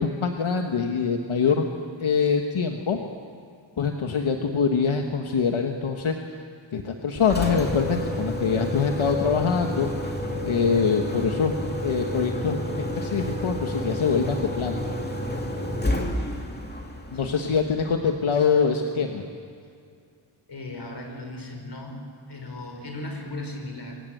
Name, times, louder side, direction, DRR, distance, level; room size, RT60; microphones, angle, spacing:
voice 1, 0.0-1.6 2.0-3.0 3.8-6.1 6.7-9.9 10.4-11.5 11.8-12.6 13.0-14.8 17.1-19.2, left 6 dB, 85° left, 3 dB, 1.5 m, -24 dB
Engine, 7.1-18.1, left 1 dB, 20° left, 2.6 m, -30 dB
voice 2, 20.5-22.0 22.3-24.0, left 2 dB, 55° left, 3 dB, 5.3 m, -37 dB
27.5 x 23.5 x 8.0 m, 2.3 s
wide cardioid pair, 125°, 47 cm